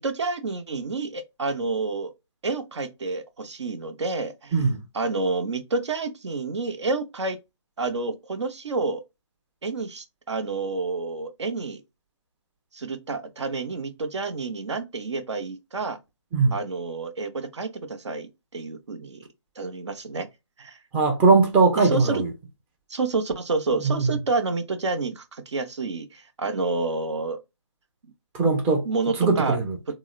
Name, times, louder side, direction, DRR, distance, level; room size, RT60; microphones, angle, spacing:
voice 1, 0.0-2.1 2.4-4.6 4.9-7.4 7.8-9.0 9.6-11.8 12.7-16.0 16.5-19.3 19.6-20.3 20.6-20.8 21.8-22.2 22.9-27.4 28.8-29.6 29.9-30.0, right 3 dB, 65° right, 0.8 m, -29 dB
voice 2, 20.9-22.3 23.8-24.1 28.3-28.9 29.2-29.8, right 4 dB, 10° right, 0.5 m, -20 dB
3.8 x 2.0 x 2.3 m
figure-of-eight pair, 150°, 16 cm